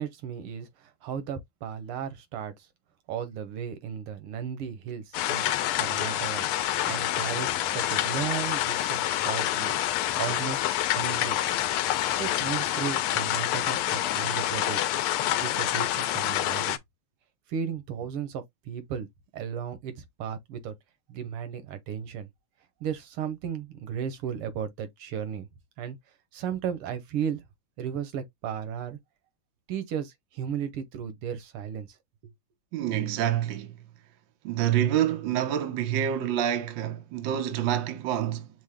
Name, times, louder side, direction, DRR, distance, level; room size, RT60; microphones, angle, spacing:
voice 1, 0.0-2.5 3.1-5.5 5.8-6.5 6.9-9.7 10.2-11.4 12.2-14.9 15.4-16.8 17.5-19.1 19.3-19.9 20.2-20.7 21.1-22.3 22.8-25.5 25.8-26.0 26.3-27.4 27.8-29.0 29.7-31.9, right 8 dB, 90° right, 1.9 m, -35 dB
sound 1, 5.1-16.8, left 13 dB, 85° left, 1.5 m, -27 dB
voice 2, 32.7-33.7 34.4-38.5, right 11 dB, 70° right, 1.5 m, -27 dB
6.1 x 2.1 x 3.5 m
omnidirectional pair, 2.4 m